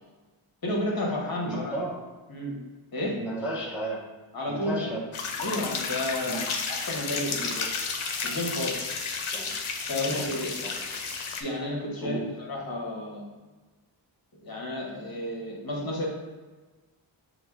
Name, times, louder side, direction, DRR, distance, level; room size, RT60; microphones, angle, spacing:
voice 1, 0.6-1.8 2.3-2.6 2.9-3.3 4.3-5.0 5.4-7.7 8.2-8.8 9.9-10.6 11.4-13.3 14.4-16.1, left 1 dB, 45° left, -2 dB, 1.0 m, -31 dB
voice 2, 1.4-2.1 3.2-4.0 4.5-5.1 6.3-6.5 9.3-9.6 10.1-10.3 10.6-10.8 12.0-12.3, right 2 dB, 5° right, -3 dB, 0.4 m, -34 dB
sound 1, 5.1-11.4, left 5 dB, 75° left, 0.6 m, -32 dB
6.0 x 2.1 x 2.3 m, 1.3 s
wide cardioid pair, 80°, 49 cm